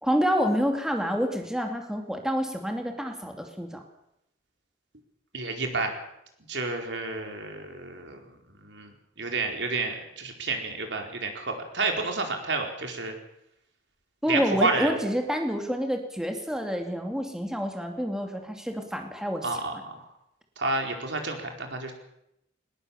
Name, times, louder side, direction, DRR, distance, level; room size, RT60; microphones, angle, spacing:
voice 1, 0.0-3.8 14.2-19.6, equal, 5° right, 3 dB, 2.6 m, -28 dB
voice 2, 5.3-5.9 6.5-8.2 8.6-13.2 14.3-15.1 19.4-20.0 20.6-21.9, right 3 dB, 80° right, 3 dB, 4.4 m, -30 dB
21.5 x 20.0 x 7.2 m, 0.81 s
head